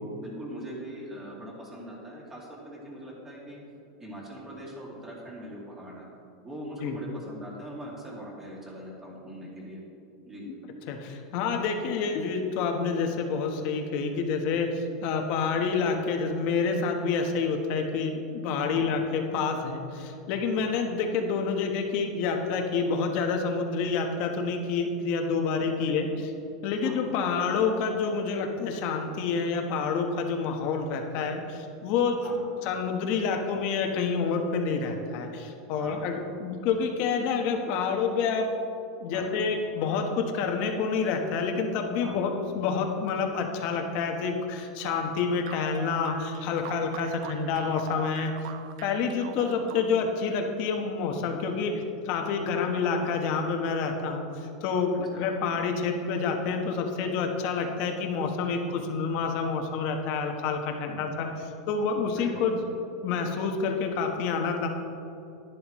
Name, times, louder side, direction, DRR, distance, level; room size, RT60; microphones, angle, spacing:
voice 1, 0.0-3.6 4.0-6.1 6.4-9.8 10.3-10.5 18.7-19.0 25.8-25.9 26.8-27.1 32.2-32.4 35.8-36.1 39.1-39.5 42.0-42.3 52.5-52.8 55.1-55.2 60.8-61.3 62.2-62.5, equal, 15° right, -4 dB, 2.4 m, -41 dB
voice 2, 10.9-26.3 26.6-32.2 32.6-38.5 39.0-48.3 48.8-51.7 52.0-61.3 61.7-62.6 63.0-64.7, left 5 dB, 50° left, 3 dB, 1.2 m, -28 dB
sound 1, 44.9-50.2, right 9 dB, 65° right, 0.5 m, -42 dB
11.0 x 10.5 x 3.1 m, 2.8 s
supercardioid pair, 145°, 3 cm